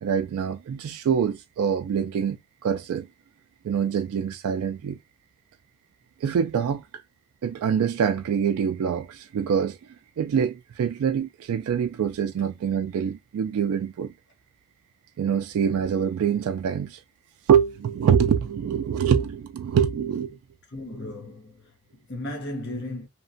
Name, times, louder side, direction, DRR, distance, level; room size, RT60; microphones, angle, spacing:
voice 1, 0.0-3.1 3.6-5.0 6.2-7.0 7.4-14.1 15.2-17.0 17.5-20.4, right 7 dB, 85° right, 0.3 m, -25 dB
voice 2, 20.7-23.1, left 1 dB, 55° left, 0.8 m, -36 dB
2.8 x 2.1 x 2.5 m
head